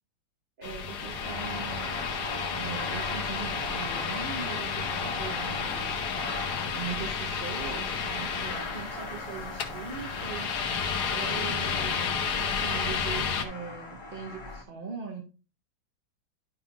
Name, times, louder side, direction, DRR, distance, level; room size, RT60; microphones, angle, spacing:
sound 1, 0.6-13.4, left 6 dB, 65° left, 1.4 m, -32 dB
voice 1, 0.6-2.0 2.5-5.9 6.6-10.6 11.1-15.2, right 6 dB, 35° right, 1 dB, 1.0 m, -40 dB
sound 2, 1.0-14.6, left 3 dB, 30° left, 1.5 m, -38 dB
11.0 x 5.7 x 2.4 m, 0.33 s
omnidirectional pair, 2.0 m